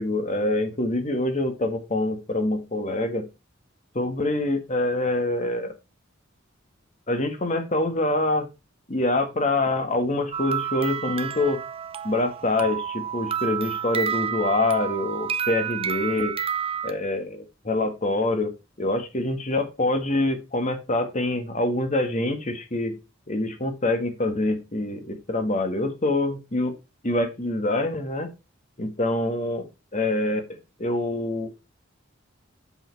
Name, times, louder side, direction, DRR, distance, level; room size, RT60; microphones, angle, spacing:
voice 1, 0.0-3.3 3.9-5.7 7.1-8.5 8.9-11.6 12.0-16.4 16.8-18.5 18.8-23.0 23.3-26.7 27.0-28.3 28.8-29.7 29.9-30.4 30.8-31.5, left 2 dB, 35° left, 7 dB, 1.7 m, -25 dB
sound 1, 10.3-16.9, right 8 dB, 30° right, 0.7 m, -30 dB
7.9 x 6.6 x 4.7 m, 0.26 s
head